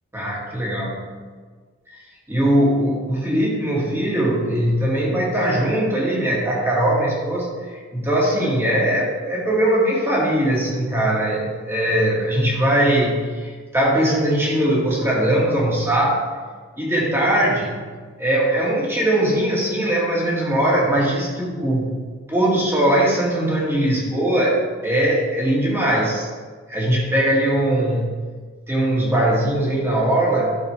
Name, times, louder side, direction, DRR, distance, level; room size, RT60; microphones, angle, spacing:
voice 1, 0.1-1.1 2.3-16.2 16.8-17.8 18.2-22.0 22.3-26.3 26.7-28.2 28.7-30.6, right 1 dB, 10° right, -5 dB, 1.9 m, -20 dB
12.0 x 6.4 x 3.4 m, 1.5 s
head